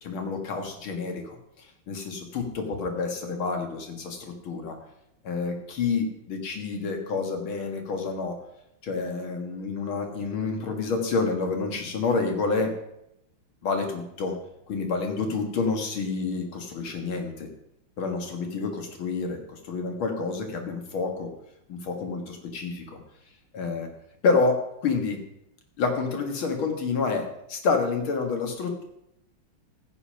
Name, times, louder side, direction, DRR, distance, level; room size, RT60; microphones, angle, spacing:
voice 1, 0.0-4.8 5.2-8.4 8.8-12.7 13.6-14.4 14.7-17.5 18.0-21.3 21.7-23.0 23.5-23.9 24.2-25.2 25.8-28.8, left 4 dB, 75° left, 4 dB, 2.5 m, -28 dB
15.5 x 7.0 x 5.7 m, 0.81 s
omnidirectional pair, 2.3 m